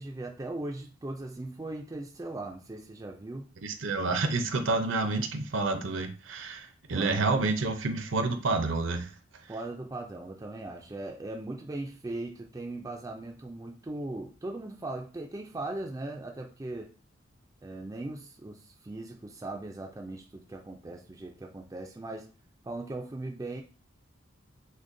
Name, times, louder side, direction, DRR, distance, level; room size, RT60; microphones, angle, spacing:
voice 1, 0.0-3.5 6.9-7.6 9.5-16.9 17.6-22.3 22.6-23.6, right 2 dB, 15° right, 0.3 m, -39 dB
voice 2, 3.6-9.1, right 3 dB, 65° right, 0.6 m, -29 dB
6.1 x 2.1 x 2.6 m
head